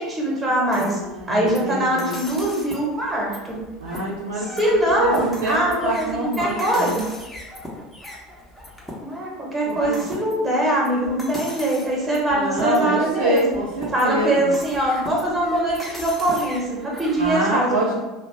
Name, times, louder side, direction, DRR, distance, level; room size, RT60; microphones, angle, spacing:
voice 1, 0.0-1.0 1.3-3.6 4.4-7.0 9.0-13.5 13.9-17.9, right 1 dB, 20° right, -3 dB, 1.0 m, -22 dB
sound 1, 0.7-17.4, left 1 dB, 5° left, 0.8 m, -38 dB
voice 2, 0.7-2.2 3.8-4.5 5.0-5.1 5.4-5.6 5.8-7.0 9.7-10.0 12.3-14.5 17.2-17.9, right 1 dB, 75° right, -6 dB, 0.4 m, -25 dB
2.4 x 2.2 x 3.1 m, 1.1 s
hypercardioid pair, 70°, 0 cm